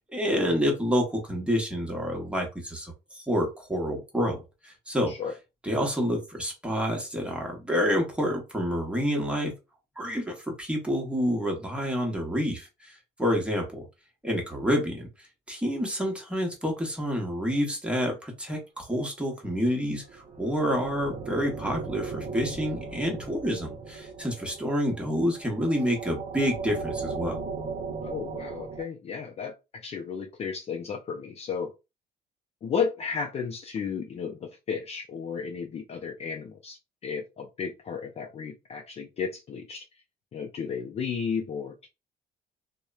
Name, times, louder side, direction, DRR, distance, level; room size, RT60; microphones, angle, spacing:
voice 1, 0.0-5.2 5.6-9.5 10.0-13.8 14.2-27.4, equal, 5° right, 0.9 m, -28 dB
ab ghost atmos, 20.0-28.8, right 4 dB, 45° right, 0.6 m, -37 dB
voice 2, 28.0-31.7 32.6-39.8 40.3-41.9, left 6 dB, 35° left, 0.5 m, -33 dB
2.9 x 2.1 x 2.3 m
cardioid pair, 110°, 17 cm